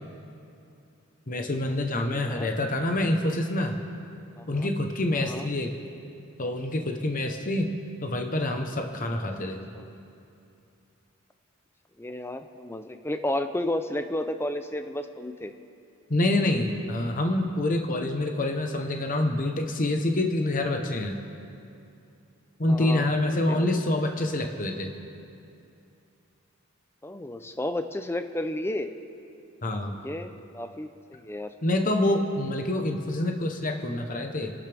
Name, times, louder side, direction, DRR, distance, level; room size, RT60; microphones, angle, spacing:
voice 1, 1.3-3.8 4.5-5.7 6.4-7.7 8.0-9.7 16.1-21.2 22.6-24.9 29.6-29.9 31.6-34.5, left 1 dB, 35° left, 4 dB, 1.0 m, -26 dB
voice 2, 2.0-2.5 4.4-4.7 5.2-5.5 9.7-9.8 12.0-15.5 22.7-23.1 23.5-23.7 24.0-24.1 27.0-28.9 29.9-31.5, left 1 dB, 10° left, 8 dB, 0.5 m, -32 dB
29.0 x 12.0 x 3.5 m, 2.6 s
head